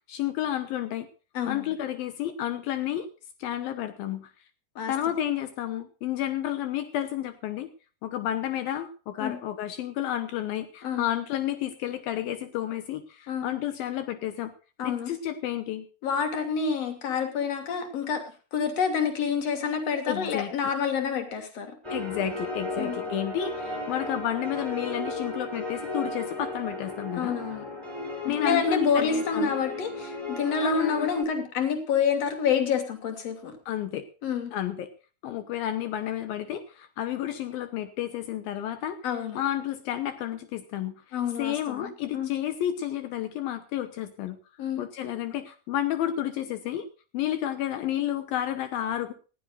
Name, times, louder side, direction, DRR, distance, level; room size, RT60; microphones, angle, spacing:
voice 1, 0.1-1.1 1.5-3.1 3.4-4.3 4.9-7.7 8.0-14.5 14.8-15.9 20.1-20.5 21.9-27.4 28.2-29.5 30.6-31.1 33.7-34.1 34.5-34.9 35.2-39.0 39.3-41.0 41.4-44.4 44.8-46.9 47.1-49.1, left 11 dB, 75° left, 10 dB, 2.8 m, -31 dB
voice 2, 1.3-1.7 4.8-4.9 9.2-9.4 10.8-11.0 13.3-13.5 14.8-15.1 16.0-18.2 18.5-21.7 22.8-23.0 27.1-27.7 28.3-33.5 34.2-34.5 39.0-39.4 41.1-42.3 44.6-44.8, left 6 dB, 45° left, 5 dB, 3.7 m, -28 dB
sound 1, 21.8-31.2, left 2 dB, 5° right, 5.9 m, -35 dB
19.0 x 15.5 x 2.6 m, 0.35 s
omnidirectional pair, 4.3 m